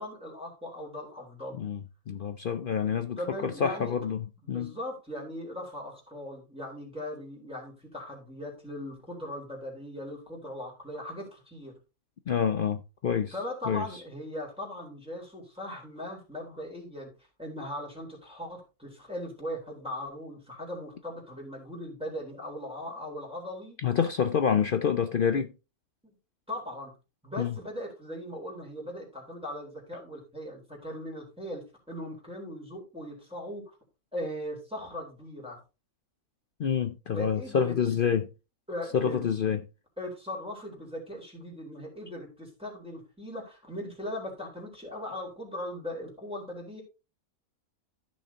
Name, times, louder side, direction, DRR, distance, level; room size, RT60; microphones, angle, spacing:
voice 1, 0.0-1.6 3.2-4.0 4.4-11.7 13.3-17.1 17.4-23.8 26.0-26.1 26.5-26.9 27.2-33.7 34.1-35.6 37.1-37.7 38.7-39.3 40.0-46.8, left 1 dB, 5° right, 3.9 m, -39 dB
voice 2, 1.6-4.7 12.3-13.3 13.7-13.8 23.8-25.5 27.4-27.5 36.6-38.3 38.9-39.6, left 7 dB, 60° left, 0.5 m, -27 dB
14.5 x 6.2 x 2.8 m
omnidirectional pair, 1.5 m